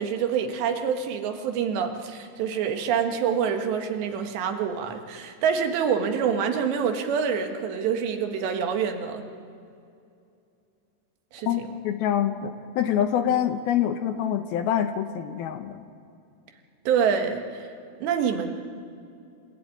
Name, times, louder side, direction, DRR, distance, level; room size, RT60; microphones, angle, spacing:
voice 1, 0.0-9.3 11.3-11.7 16.9-17.6 18.0-18.5, right 7 dB, 80° right, 5 dB, 3.8 m, -26 dB
voice 2, 11.5-15.8, left 9 dB, 75° left, 8 dB, 2.5 m, -26 dB
27.5 x 16.0 x 9.3 m, 2.5 s
omnidirectional pair, 5.0 m